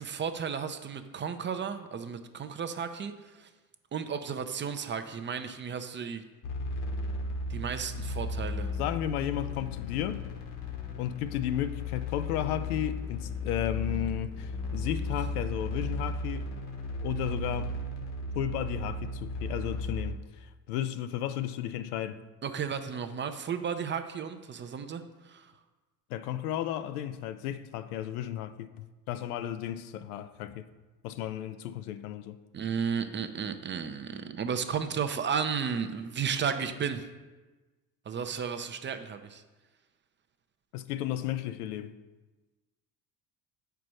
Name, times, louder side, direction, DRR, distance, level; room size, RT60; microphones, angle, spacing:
voice 1, 0.0-3.5 3.9-6.2 7.5-8.7 22.4-25.5 32.5-37.1 38.1-39.4, right 6 dB, 25° right, 0.5 m, -33 dB
sound 1, 6.4-20.1, left 2 dB, 60° left, 1.2 m, -35 dB
voice 2, 8.8-10.3 11.0-16.5 17.0-17.7 18.4-22.2 26.1-30.7 31.0-32.4 40.7-42.0, left 11 dB, 85° left, 0.6 m, -34 dB
5.1 x 4.6 x 6.2 m
hypercardioid pair, 75°, 44 cm